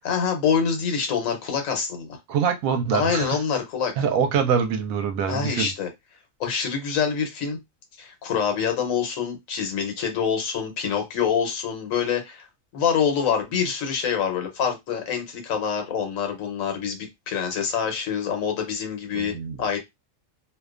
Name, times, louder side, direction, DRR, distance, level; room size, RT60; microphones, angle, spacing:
voice 1, 0.0-2.2 2.9-3.9 5.3-5.9 6.4-7.6 8.0-12.5 12.7-19.8, left 7 dB, 80° left, 1.2 m, -26 dB
voice 2, 2.3-3.4 4.0-5.7 19.1-19.6, right 7 dB, 85° right, 1.0 m, -24 dB
2.5 x 2.2 x 2.3 m
omnidirectional pair, 1.4 m